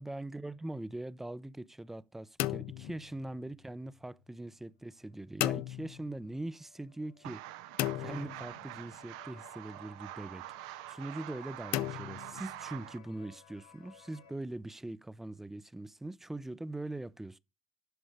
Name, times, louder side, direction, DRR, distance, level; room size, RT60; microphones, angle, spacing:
voice 1, 0.0-7.4 8.0-17.4, right 2 dB, 10° right, 0.6 m, -42 dB
sound 1, 2.4-3.7 5.4-6.4 7.8-9.0 11.7-12.9, left 15 dB, 65° left, 0.5 m, -36 dB
sound 2, 5.0-14.3, left 6 dB, 80° left, 1.7 m, -60 dB
sound 3, 7.2-13.0, right 17 dB, 70° right, 0.6 m, -46 dB
11.5 x 6.2 x 4.9 m
hypercardioid pair, 65°, 4 cm